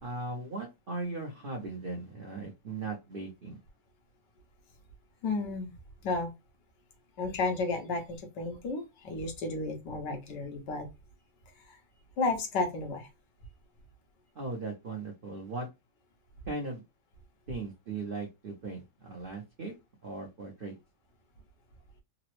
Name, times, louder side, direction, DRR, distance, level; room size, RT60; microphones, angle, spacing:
voice 1, 0.0-3.6 14.3-15.7 16.5-16.8 17.5-19.7 20.0-20.7, right 3 dB, 90° right, 0.4 m, -38 dB
voice 2, 5.2-5.7 6.0-6.3 7.2-10.9 11.7-11.8 12.2-13.1, left 3 dB, 70° left, 1.5 m, -32 dB
3.8 x 2.0 x 3.0 m
omnidirectional pair, 2.0 m